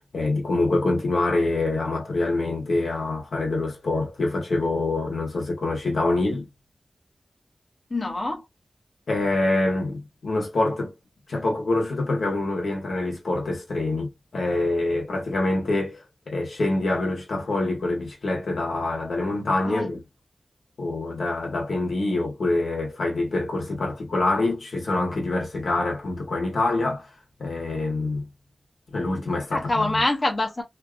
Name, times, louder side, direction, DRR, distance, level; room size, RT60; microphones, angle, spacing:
voice 1, 0.1-6.5 9.1-10.9 11.3-20.0 20.8-27.1 27.4-28.3 28.9-29.6, left 2 dB, 80° left, 1.1 m, -25 dB
voice 2, 7.9-8.5 19.6-19.9 29.5-30.6, left 2 dB, 45° left, 0.8 m, -25 dB
2.7 x 2.4 x 2.3 m
cardioid pair, 45°, 0 cm